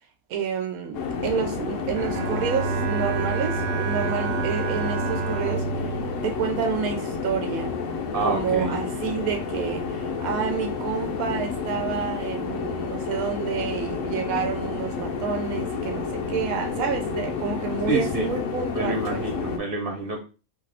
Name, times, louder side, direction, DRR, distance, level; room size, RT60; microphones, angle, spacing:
voice 1, 0.3-5.9 6.2-7.7 8.2-19.2, right 7 dB, 85° right, 1.0 m, -29 dB
sound 1, 0.9-19.6, left 5 dB, 70° left, 1.0 m, -30 dB
Bowed string instrument, 1.9-7.2, right 7 dB, 65° right, 0.8 m, -30 dB
voice 2, 8.1-8.8 17.9-18.3 18.7-20.2, right 2 dB, 45° right, 1.1 m, -27 dB
2.8 x 2.4 x 3.3 m
omnidirectional pair, 1.4 m